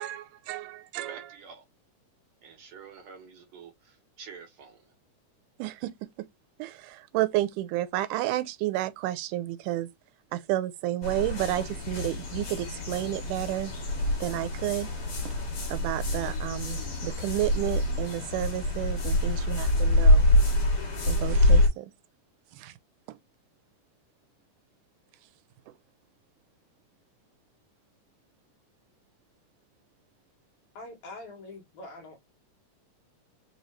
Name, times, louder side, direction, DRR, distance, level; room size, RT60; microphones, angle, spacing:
voice 1, 0.0-1.3 5.6-6.3 6.6-9.9 10.3-13.7 14.2-14.9 15.7-20.3 21.1-21.9 22.5-22.7 23.1-23.2, right 15 dB, 85° right, 2.1 m, -31 dB
voice 2, 1.1-1.6 2.4-4.8, right 6 dB, 70° right, 1.7 m, -48 dB
sound 1, 11.0-21.7, left 1 dB, 45° left, 2.7 m, -25 dB
voice 3, 30.7-32.2, left 2 dB, 65° left, 2.7 m, -44 dB
5.4 x 2.7 x 3.1 m
omnidirectional pair, 3.6 m